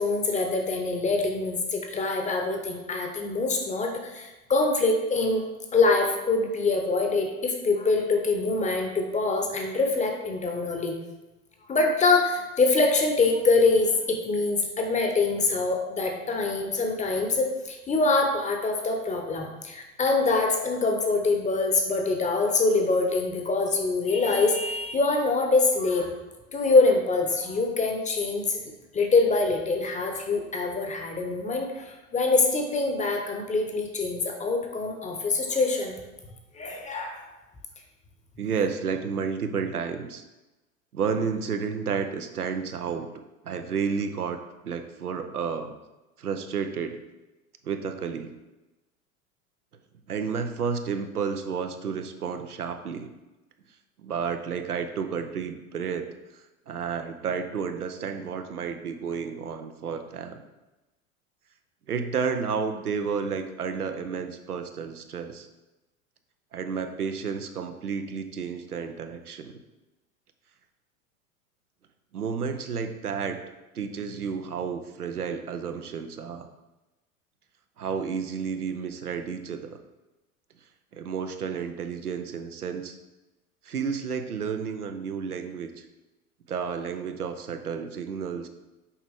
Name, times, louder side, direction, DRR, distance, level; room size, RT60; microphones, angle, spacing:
voice 1, 0.0-5.4 5.7-11.0 11.7-26.1 26.5-28.6 28.9-36.0 36.5-37.2, left 3 dB, 15° left, 3 dB, 0.9 m, -24 dB
voice 2, 38.4-40.2 40.9-43.1 43.4-44.4 44.6-45.7 46.2-47.0 47.6-48.3 50.1-53.1 54.0-60.4 61.9-65.5 66.5-69.6 72.1-73.4 73.7-76.5 77.8-79.8 80.9-83.0 83.6-85.8 86.5-88.5, right 6 dB, 85° right, 7 dB, 0.7 m, -31 dB
7.1 x 4.8 x 3.5 m, 1.1 s
figure-of-eight pair, 85°, 44 cm